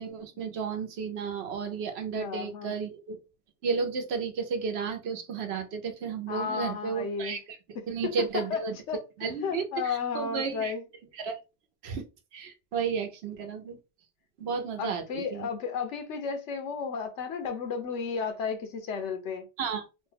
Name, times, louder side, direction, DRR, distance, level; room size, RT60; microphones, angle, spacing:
voice 1, 0.0-3.2 3.6-7.4 7.9-8.8 9.2-10.7 11.2-11.4 11.8-12.1 12.3-13.8 14.4-15.5 19.6-19.8, right 5 dB, 70° right, 0.9 m, -33 dB
voice 2, 2.1-2.7 6.3-7.4 7.7-8.6 8.9-9.0 9.4-10.8 14.8-19.5, left 5 dB, 85° left, 1.0 m, -33 dB
3.1 x 2.1 x 3.3 m
omnidirectional pair, 1.2 m